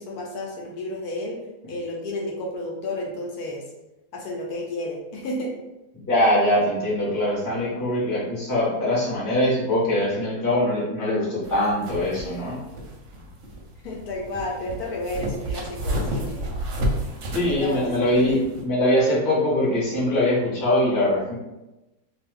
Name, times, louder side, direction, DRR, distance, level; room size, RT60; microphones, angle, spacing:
voice 1, 0.0-1.4 1.7-3.6 4.1-5.6 13.8-16.6 17.4-18.4, left 1 dB, 75° left, -1 dB, 1.1 m, -32 dB
voice 2, 5.9-12.6 17.3-21.3, left 1 dB, 15° left, -7 dB, 0.8 m, -22 dB
sound 1, 11.4-18.6, equal, 65° right, 0.9 m, -31 dB
2.6 x 2.4 x 3.3 m, 1.0 s
omnidirectional pair, 1.7 m